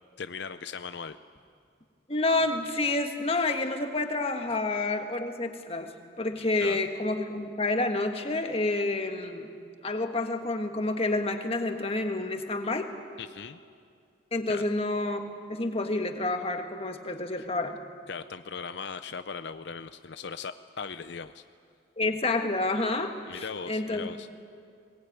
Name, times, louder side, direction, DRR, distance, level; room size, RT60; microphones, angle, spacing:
voice 1, 0.2-1.2 6.6-6.8 13.2-13.6 14.5-14.6 17.4-17.5 18.1-21.4 23.3-24.3, left 5 dB, 60° left, 11 dB, 0.5 m, -38 dB
voice 2, 2.1-5.9 6.2-9.5 9.8-12.9 14.3-15.2 15.5-17.8 22.0-24.1, left 2 dB, 30° left, 5 dB, 1.5 m, -29 dB
21.5 x 19.5 x 9.3 m, 2.3 s
head